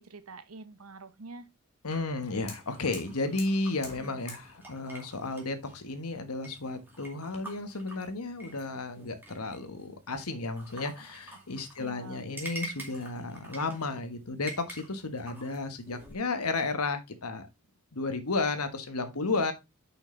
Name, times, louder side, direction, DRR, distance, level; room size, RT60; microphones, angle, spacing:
voice 1, 0.0-1.5 4.0-4.2 11.8-12.2, right 3 dB, 75° right, 0.9 m, -46 dB
voice 2, 1.8-17.5 17.9-19.5, left 3 dB, 85° left, 1.4 m, -33 dB
Fire, 1.9-7.4, left 3 dB, 30° left, 2.9 m, -51 dB
sound 1, 2.7-16.2, right 2 dB, 10° right, 2.4 m, -48 dB
6.5 x 5.9 x 3.9 m
head